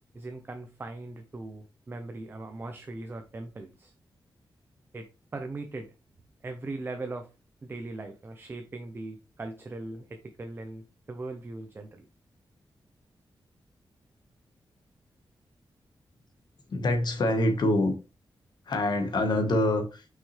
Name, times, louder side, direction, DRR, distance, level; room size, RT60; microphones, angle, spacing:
voice 1, 0.1-3.9 4.9-5.9 6.4-7.3 7.6-12.1, right 2 dB, 25° right, 0.7 m, -39 dB
voice 2, 16.7-17.9 18.7-20.1, left 1 dB, 55° left, 1.4 m, -25 dB
6.0 x 5.6 x 3.3 m
wide cardioid pair, 170°, 9 cm